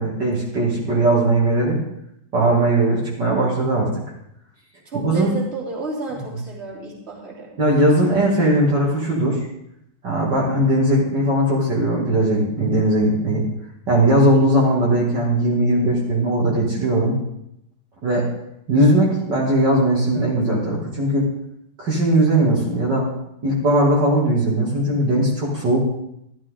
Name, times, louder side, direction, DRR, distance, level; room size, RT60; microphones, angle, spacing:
voice 1, 0.0-1.8 2.3-3.9 5.0-5.3 7.6-9.4 10.0-13.4 13.9-17.1 18.0-18.3 18.7-21.3 21.8-23.1 23.4-25.8, right 1 dB, 55° right, -6 dB, 3.0 m, -19 dB
voice 2, 4.9-7.5, right 3 dB, 30° right, -4 dB, 3.5 m, -31 dB
13.5 x 12.5 x 3.7 m, 0.78 s
omnidirectional pair, 2.2 m